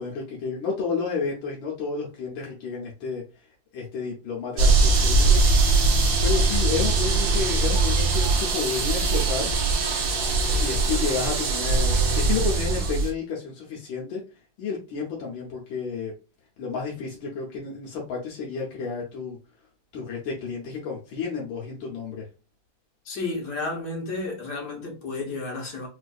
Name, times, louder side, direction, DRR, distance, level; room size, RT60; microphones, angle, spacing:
voice 1, 0.0-3.2 3.7-5.8 6.2-9.5 10.4-14.2 14.6-16.1 16.6-19.4 19.9-22.3, left 5 dB, 80° left, 1.5 m, -31 dB
sound 1, 4.6-13.1, right 3 dB, 60° right, 1.2 m, -21 dB
voice 2, 23.0-25.9, left 3 dB, 65° left, 1.5 m, -32 dB
4.3 x 2.5 x 2.3 m
omnidirectional pair, 2.1 m